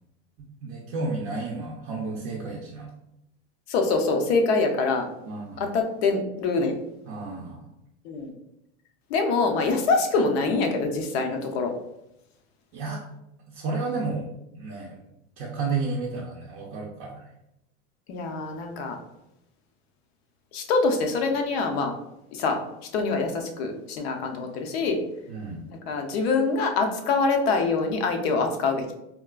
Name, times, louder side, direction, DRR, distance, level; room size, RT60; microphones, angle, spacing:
voice 1, 0.4-2.9 5.2-5.7 7.1-7.6 12.7-13.0 13.5-15.0 15.4-17.2 25.3-25.6, right 3 dB, 40° right, -3 dB, 0.5 m, -32 dB
voice 2, 3.7-5.1 5.6-6.7 8.0-8.3 9.1-11.7 18.1-19.0 20.5-21.9 22.3-22.6 22.9-25.0 25.7-28.9, left 4 dB, 65° left, 4 dB, 0.7 m, -25 dB
3.6 x 2.3 x 2.3 m, 0.86 s
supercardioid pair, 150°, 33 cm